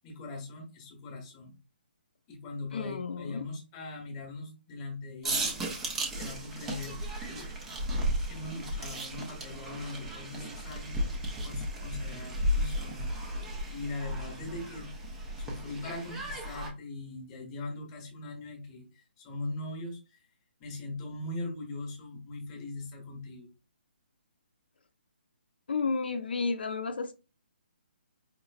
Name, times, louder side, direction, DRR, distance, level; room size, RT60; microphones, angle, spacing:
voice 1, 0.0-1.6 2.3-5.6 6.2-7.0 7.3-7.5 8.3-11.0 11.4-13.1 13.7-14.9 15.4-20.0 20.6-23.5, left 2 dB, 15° left, 1 dB, 0.9 m, -40 dB
voice 2, 2.7-3.4 25.7-27.1, left 4 dB, 65° left, 7 dB, 0.6 m, -32 dB
sound 1, 5.2-16.7, equal, 5° right, 0.3 m, -34 dB
5.0 x 3.0 x 2.4 m, 0.31 s
hypercardioid pair, 180°, 6 cm